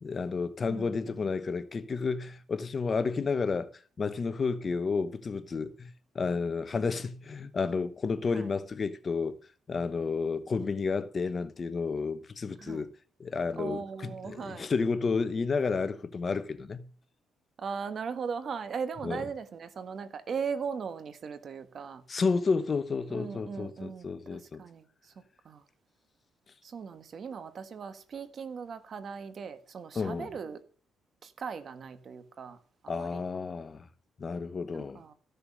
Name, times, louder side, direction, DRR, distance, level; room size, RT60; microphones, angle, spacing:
voice 1, 0.0-3.7 4.0-9.4 9.7-12.9 13.2-16.9 19.0-19.2 22.1-24.6 29.9-30.3 32.9-33.8 34.2-35.0, left 4 dB, 40° left, 1.0 m, -31 dB
voice 2, 0.6-1.3 8.3-8.5 12.6-12.9 13.6-14.7 17.6-22.0 23.1-25.1 25.4-25.6 26.6-30.6 31.2-32.6 32.8-33.2 34.7-35.1, right 6 dB, 50° right, 1.3 m, -38 dB
14.5 x 6.8 x 6.4 m
cardioid pair, 90°, 0 cm